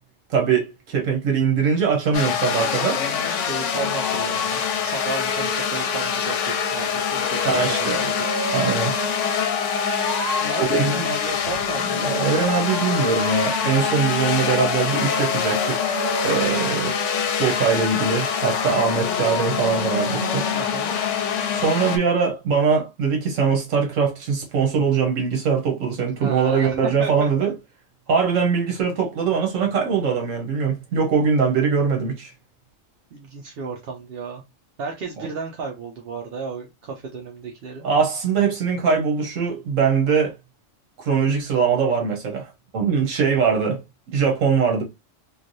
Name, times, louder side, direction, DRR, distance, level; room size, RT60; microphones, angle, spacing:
voice 1, 0.3-3.0 7.4-8.0 8.5-8.9 10.6-11.0 12.0-15.9 16.2-16.9 17.4-20.5 21.5-27.5 28.1-32.3 35.2-35.3 37.8-40.3 41.0-43.8 44.1-44.8, right 6 dB, 75° right, 1.2 m, -22 dB
sound 1, 2.1-22.0, left 7 dB, 70° left, 0.9 m, -25 dB
voice 2, 3.2-8.3 10.4-12.1 20.5-20.9 26.2-27.5 33.1-34.4 34.8-37.8, right 4 dB, 60° right, 0.7 m, -33 dB
sound 2, 5.3-10.5 12.7-18.5, equal, 15° left, 1.0 m, -32 dB
3.2 x 2.5 x 2.5 m
omnidirectional pair, 1.3 m